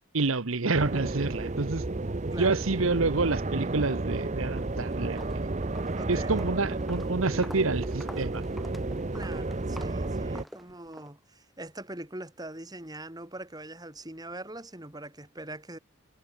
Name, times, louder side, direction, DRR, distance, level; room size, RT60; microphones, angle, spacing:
voice 1, 0.1-1.8 2.4-5.5 6.1-8.4, right 3 dB, 80° right, 1.1 m, -28 dB
sound 1, 0.7-10.4, right 2 dB, 35° right, 0.8 m, -32 dB
voice 2, 2.3-2.6 5.9-6.3 9.1-15.8, right 1 dB, 20° right, 4.2 m, -42 dB
Walk footsteps, 4.6-4.7 5.0-11.1, equal, ahead, 1.9 m, -48 dB
head